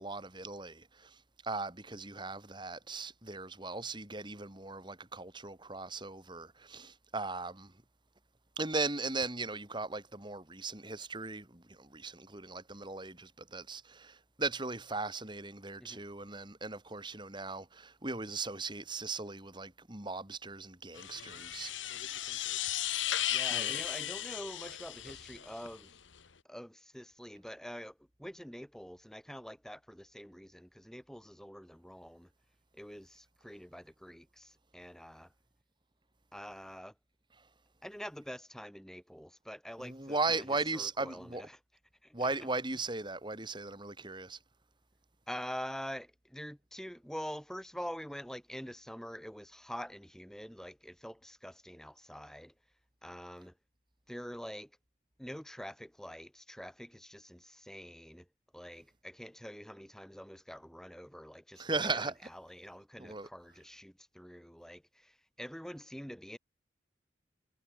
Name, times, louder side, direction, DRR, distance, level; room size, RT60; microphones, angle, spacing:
voice 1, 0.0-7.7 8.6-22.3 23.5-23.7 39.8-41.4 42.1-44.4 61.6-62.1 63.0-63.3, right 3 dB, 25° right, 3.0 m, -38 dB
sound 1, 20.9-25.7, left 12 dB, 85° left, 1.3 m, -36 dB
voice 2, 23.3-25.9 26.5-32.3 32.7-35.3 36.3-36.9 37.8-40.4 40.7-41.6 42.0-42.3 45.3-52.5 53.0-53.5 54.1-54.7 55.2-58.2 58.5-66.4, equal, 5° left, 3.4 m, -46 dB
head